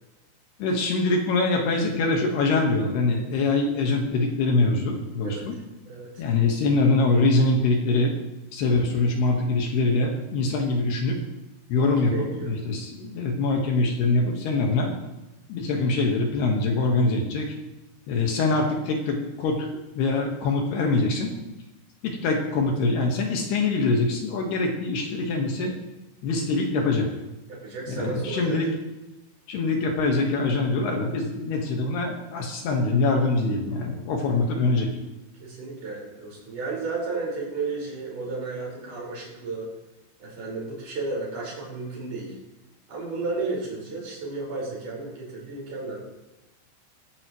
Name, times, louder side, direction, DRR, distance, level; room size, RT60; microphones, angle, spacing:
voice 1, 0.6-5.6 6.2-8.1 8.5-11.2 11.7-14.9 15.5-17.5 18.1-21.3 22.0-25.7 26.2-27.1 27.9-28.7 29.5-34.9, left 3 dB, 65° left, 1 dB, 3.1 m, -24 dB
voice 2, 5.9-6.2 11.7-12.5 27.5-28.6 33.7-34.1 35.4-39.7 40.2-42.4 42.9-46.0, right 3 dB, 40° right, -4 dB, 6.0 m, -33 dB
16.0 x 15.0 x 3.1 m, 1.0 s
omnidirectional pair, 5.7 m